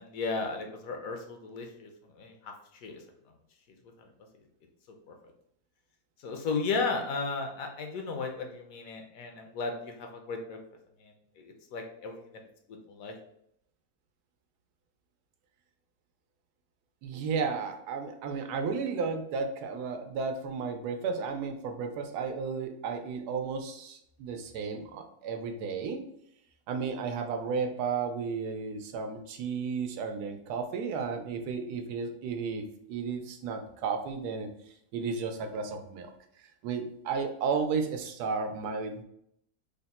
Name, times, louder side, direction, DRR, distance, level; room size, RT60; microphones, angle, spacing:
voice 1, 0.0-3.0 4.0-4.1 5.1-5.2 6.2-10.6 11.0-12.4 12.7-13.1, left 4 dB, 70° left, 3 dB, 1.0 m, -35 dB
voice 2, 17.0-26.0 26.7-34.5 34.9-36.1 36.6-39.0, right 5 dB, 85° right, 5 dB, 1.1 m, -33 dB
3.5 x 2.1 x 4.0 m, 0.73 s
omnidirectional pair, 1.6 m